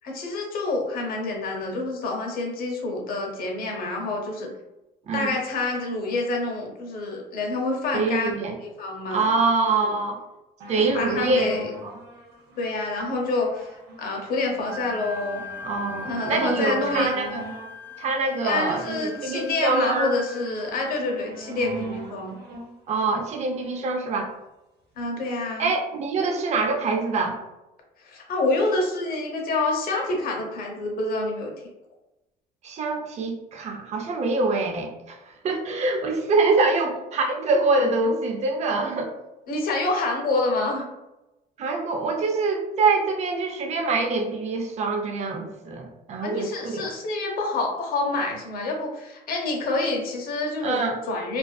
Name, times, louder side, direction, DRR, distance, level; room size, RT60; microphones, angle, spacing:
voice 1, 0.0-4.5 5.1-8.3 8.6-9.3 10.8-11.7 12.6-15.4 16.0-17.1 18.4-22.4 25.0-25.7 28.0-31.5 39.5-40.9 46.2-51.4, left 2 dB, 60° left, 0 dB, 0.7 m, -27 dB
voice 2, 7.9-8.6 9.1-10.2 10.7-11.5 11.8-11.9 15.6-17.4 18.0-20.1 22.9-24.3 25.6-27.4 32.6-35.2 35.4-39.1 41.6-46.8 50.6-51.0, right 3 dB, 40° right, 2 dB, 0.5 m, -25 dB
sound 1, 10.6-24.2 24.9-25.0, right 2 dB, 75° right, 0.7 m, -42 dB
Wind instrument woodwind instrument, 14.7-20.5, left 4 dB, 10° left, 0.4 m, -40 dB
2.4 x 2.4 x 2.2 m, 0.97 s
cardioid pair, 110°, 17 cm